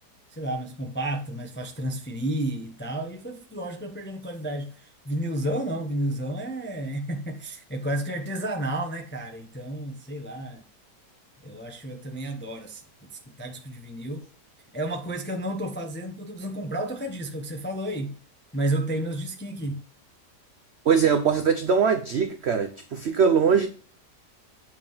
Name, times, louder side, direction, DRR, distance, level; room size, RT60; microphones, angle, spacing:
voice 1, 0.3-10.6 11.4-14.3 14.7-18.1 18.5-19.8, right 1 dB, 15° left, 0.4 m, -31 dB
voice 2, 20.9-23.7, right 6 dB, 70° right, 0.6 m, -21 dB
8.2 x 3.5 x 5.3 m
omnidirectional pair, 1.8 m